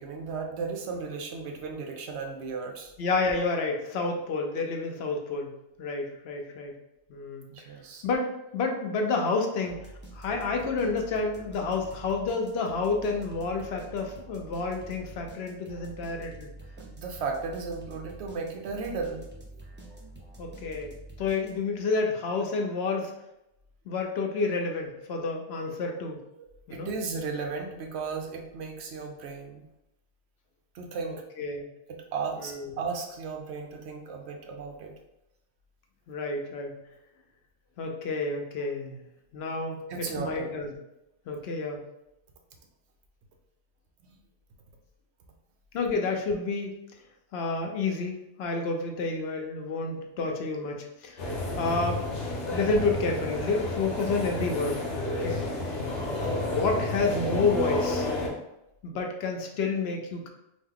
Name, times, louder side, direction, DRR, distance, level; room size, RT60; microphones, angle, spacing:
voice 1, 0.0-2.9 7.5-8.0 16.8-19.2 26.4-29.6 30.7-31.2 31.9-34.9 39.9-40.5 56.1-56.4, right 4 dB, 70° right, 2 dB, 0.8 m, -35 dB
voice 2, 3.0-5.5 5.8-6.7 7.1-7.5 8.0-9.8 10.1-16.5 20.4-23.1 23.9-26.2 26.7-26.9 31.0-31.7 32.4-32.8 36.1-36.7 37.8-39.0 39.3-40.7 41.3-41.8 45.7-46.7 47.3-51.2 51.6-52.0 52.5-54.8 55.2-55.4 56.5-58.1 58.8-60.3, left 3 dB, 70° left, 2 dB, 0.8 m, -29 dB
sound 1, 9.7-21.9, right 2 dB, 15° right, 0.4 m, -47 dB
sound 2, 51.2-58.3, left 2 dB, 90° left, 1.1 m, -31 dB
3.0 x 2.1 x 3.6 m, 0.87 s
omnidirectional pair, 1.2 m